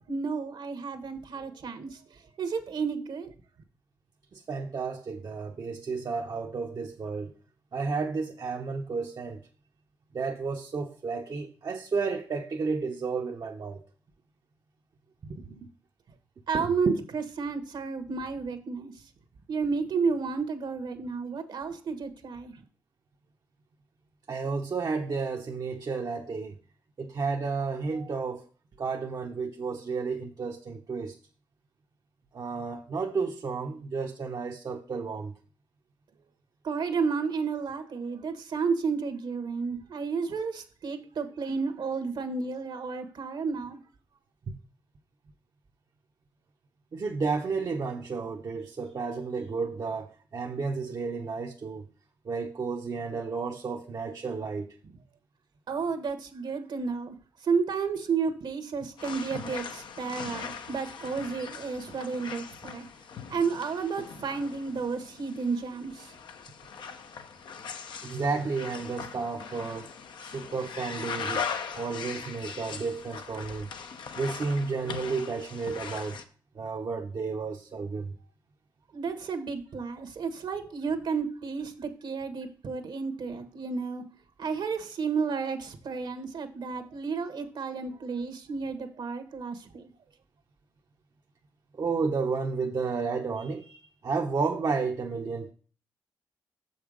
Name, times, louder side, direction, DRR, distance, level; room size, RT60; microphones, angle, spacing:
voice 1, 0.1-3.3 16.5-18.9 19.5-22.6 36.6-43.8 55.7-57.1 57.4-62.9 63.3-66.1 78.9-84.0 84.4-89.9, right 5 dB, 70° right, 1.4 m, -32 dB
voice 2, 4.3-7.3 7.7-9.4 10.1-13.8 15.3-15.7 16.5-16.9 24.3-26.5 27.0-28.4 28.8-31.2 32.3-35.3 44.5-44.6 46.9-51.8 52.3-54.7 68.0-69.9 70.2-73.7 74.2-76.2 76.6-78.1 91.8-95.5, right 4 dB, 55° right, 0.9 m, -32 dB
sound 1, 59.0-76.2, left 6 dB, 70° left, 0.8 m, -40 dB
6.9 x 5.6 x 5.0 m
supercardioid pair, 55°, 8 cm